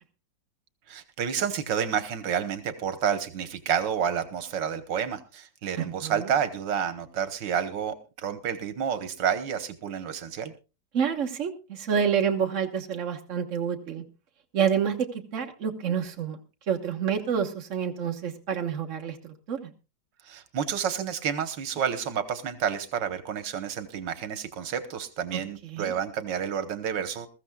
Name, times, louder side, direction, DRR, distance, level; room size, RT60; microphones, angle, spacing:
voice 1, 0.9-10.5 20.2-27.3, right 8 dB, 85° right, 10 dB, 1.8 m, -30 dB
voice 2, 5.8-6.3 10.9-14.0 14.5-16.4 16.7-19.2 19.5-19.7 25.3-25.4 25.7-25.9, right 7 dB, 45° right, 3 dB, 1.6 m, -28 dB
21.5 x 14.0 x 2.3 m, 0.31 s
omnidirectional pair, 1.9 m